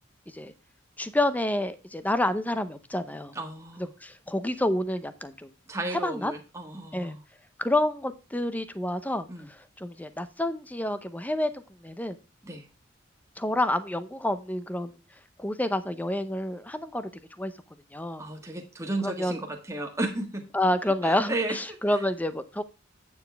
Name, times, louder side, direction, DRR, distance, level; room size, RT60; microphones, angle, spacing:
voice 1, 1.0-3.3 4.0-5.5 5.9-6.3 6.9-7.2 7.6-12.2 13.4-15.0 15.4-17.1 17.4-17.5 17.9-18.2 19.0-19.4 20.5-22.6, left 1 dB, 10° left, 12 dB, 0.7 m, -28 dB
voice 2, 3.3-3.9 5.7-7.2 9.3-9.5 12.4-12.7 18.2-20.4 21.0-22.0, right 2 dB, 15° right, 3 dB, 1.6 m, -33 dB
9.0 x 7.1 x 3.4 m, 0.31 s
head